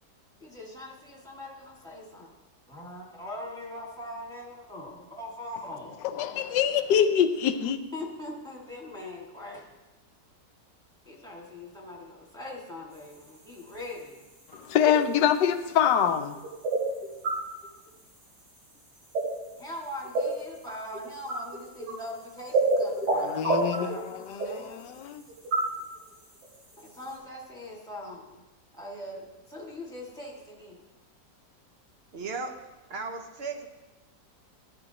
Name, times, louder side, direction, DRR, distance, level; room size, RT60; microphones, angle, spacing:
voice 1, 0.4-2.3 2.7-6.1 7.9-9.7 11.1-14.3 19.6-24.8 26.8-28.4 28.7-30.8, left 1 dB, ahead, 1.8 m, -41 dB
voice 2, 6.0-7.8 14.5-16.4 23.1-25.2, left 9 dB, 90° left, 1.3 m, -25 dB
sound 1, 12.9-27.2, right 2 dB, 90° right, 3.5 m, -32 dB
voice 3, 32.1-32.5 32.9-33.7, right 4 dB, 50° right, 0.8 m, -35 dB
14.0 x 9.1 x 2.9 m
omnidirectional pair, 1.8 m